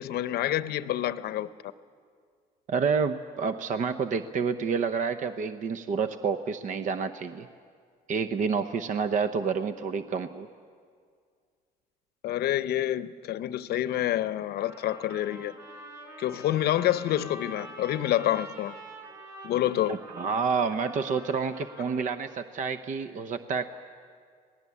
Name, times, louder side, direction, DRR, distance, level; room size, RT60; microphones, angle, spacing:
voice 1, 0.0-1.5 12.2-15.6 16.2-18.7 19.4-20.0, left 13 dB, 70° left, 0.8 m, -28 dB
voice 2, 2.7-7.5 8.1-10.5 19.9-23.7, right 5 dB, 50° right, 0.8 m, -29 dB
Trumpet, 14.6-22.3, right 1 dB, 20° right, 6.3 m, -46 dB
26.5 x 18.5 x 8.5 m
cardioid pair, 110°, 17 cm